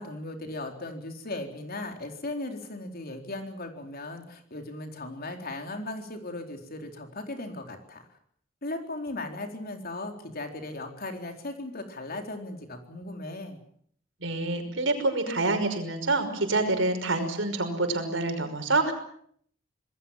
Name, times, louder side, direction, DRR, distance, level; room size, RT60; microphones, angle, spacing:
voice 1, 0.0-8.0 8.6-13.6, left 2 dB, 50° left, 4 dB, 4.0 m, -37 dB
voice 2, 14.2-18.9, right 2 dB, 70° right, 7 dB, 5.6 m, -27 dB
26.5 x 20.5 x 7.5 m, 0.66 s
head